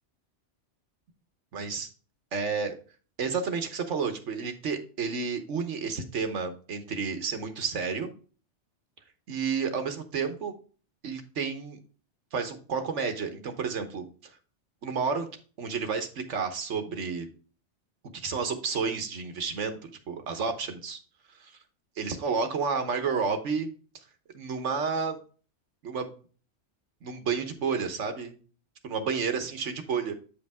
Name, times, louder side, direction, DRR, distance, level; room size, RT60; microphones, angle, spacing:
voice 1, 1.5-1.9 2.3-2.8 3.2-8.1 9.3-10.5 11.0-11.8 12.3-14.1 14.8-15.3 15.6-17.3 18.1-21.0 21.4-21.5 22.0-23.7 24.3-25.2 25.8-26.1 27.0-28.3 28.8-30.1, right 5 dB, 85° right, 7 dB, 1.4 m, -31 dB
8.4 x 5.2 x 3.5 m, 0.38 s
omnidirectional pair, 1.2 m